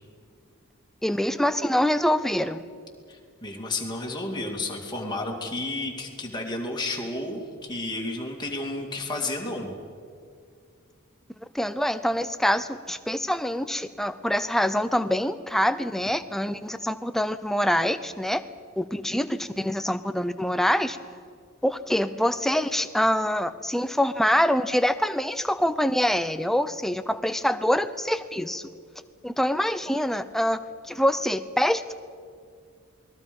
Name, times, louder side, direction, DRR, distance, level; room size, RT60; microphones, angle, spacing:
voice 1, 1.0-2.6 11.5-18.4 18.8-21.0 21.6-28.7 29.2-30.6 30.9-31.9, equal, ahead, 10 dB, 0.6 m, -25 dB
voice 2, 3.1-9.7, left 2 dB, 20° left, 0 dB, 2.6 m, -32 dB
28.0 x 21.0 x 5.5 m, 2.2 s
head